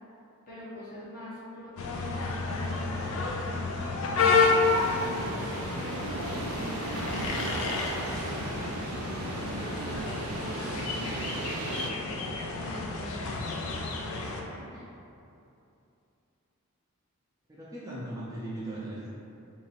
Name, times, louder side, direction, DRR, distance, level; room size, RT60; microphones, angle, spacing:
voice 1, 0.5-14.9, equal, 40° left, -9 dB, 1.1 m, -44 dB
sound 1, 1.8-14.4, left 4 dB, 65° left, 0.4 m, -30 dB
sound 2, 4.3-11.9, right 3 dB, 85° right, 0.4 m, -37 dB
voice 2, 17.5-19.1, right 1 dB, 15° right, -7 dB, 0.4 m, -38 dB
2.8 x 2.8 x 4.4 m, 2.7 s
head